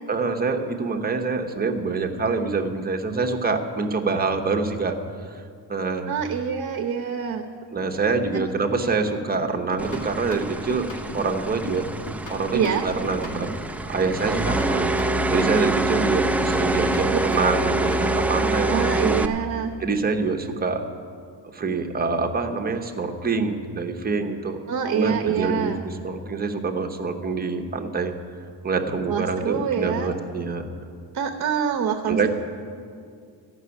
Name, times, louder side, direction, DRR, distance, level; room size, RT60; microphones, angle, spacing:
voice 1, 0.1-4.9 5.3-5.4 5.7-6.1 7.7-11.9 12.3-13.5 13.9-19.3 19.8-20.9 21.5-24.6 24.9-28.1 28.6-30.7 32.1-32.3, right 4 dB, 25° right, 4 dB, 1.0 m, -26 dB
voice 2, 6.1-7.5 8.3-8.4 8.8-8.9 12.5-12.9 17.1-17.2 18.7-19.7 24.7-25.8 29.1-30.1 31.1-32.3, right 7 dB, 50° right, 5 dB, 0.9 m, -25 dB
sound 1, 9.3-11.4 11.7-13.7 14.0-16.0 16.3-18.1, left 2 dB, 70° left, 2.3 m, -39 dB
sound 2, 9.8-19.3, right 2 dB, 5° right, 0.3 m, -25 dB
14.0 x 6.2 x 9.8 m, 2.3 s
cardioid pair, 130°, 39 cm